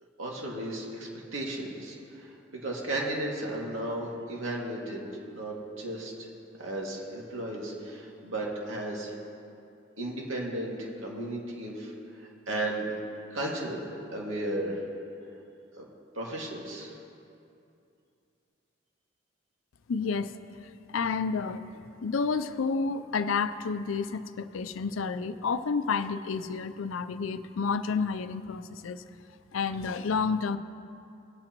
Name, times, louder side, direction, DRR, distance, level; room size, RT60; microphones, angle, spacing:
voice 1, 0.2-5.0 5.3-6.3 6.6-9.2 10.0-11.9 12.5-12.9 13.3-14.8 15.8-15.9 16.2-16.9, right 1 dB, 90° right, -2 dB, 2.1 m, -34 dB
voice 2, 19.9-20.4 20.9-21.6 22.0-29.0 29.5-30.6, left 5 dB, 90° left, 12 dB, 0.5 m, -30 dB
19.0 x 8.7 x 3.0 m, 2.6 s
head